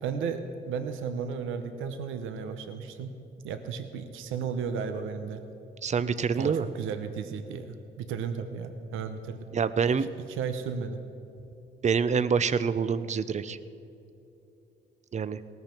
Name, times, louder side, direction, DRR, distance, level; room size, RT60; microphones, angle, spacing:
voice 1, 0.0-3.1 3.4-5.4 6.4-9.5 10.3-11.0, right 6 dB, 90° right, 8 dB, 0.9 m, -34 dB
voice 2, 5.8-6.6 9.5-10.1 11.8-13.6 15.1-15.4, right 6 dB, 35° right, 14 dB, 0.6 m, -26 dB
18.0 x 13.5 x 4.5 m, 2.9 s
cardioid pair, 90°, 20 cm